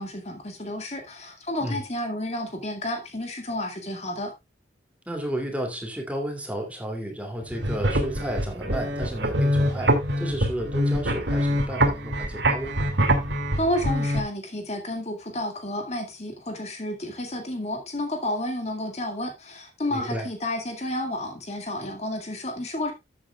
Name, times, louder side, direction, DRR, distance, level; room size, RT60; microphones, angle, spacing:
voice 1, 0.0-4.3 13.5-22.9, left 1 dB, 35° left, 1.8 m, -31 dB
voice 2, 5.1-12.8 19.9-20.3, right 1 dB, 5° right, 2.5 m, -32 dB
sound 1, 7.4-14.2, equal, 65° right, 2.2 m, -24 dB
13.5 x 8.5 x 2.3 m
head